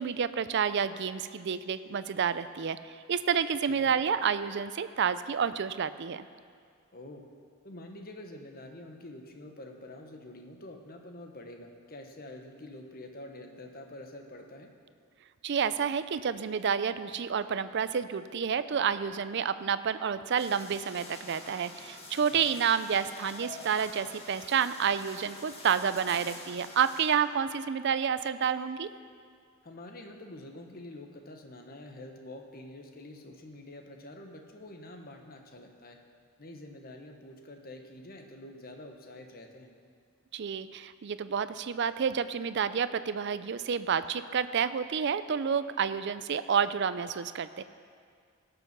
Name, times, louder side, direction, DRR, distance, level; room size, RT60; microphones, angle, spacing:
voice 1, 0.0-2.8 3.1-6.3 15.4-28.9 40.3-47.6, right 7 dB, 55° right, 13 dB, 0.4 m, -29 dB
voice 2, 6.9-7.2 7.6-14.7 22.3-22.6 29.6-36.0 36.4-39.7, left 1 dB, 45° left, 4 dB, 1.2 m, -47 dB
sound 1, 20.4-27.1, left 2 dB, 30° left, 1.5 m, -47 dB
17.5 x 7.0 x 6.0 m, 2.1 s
head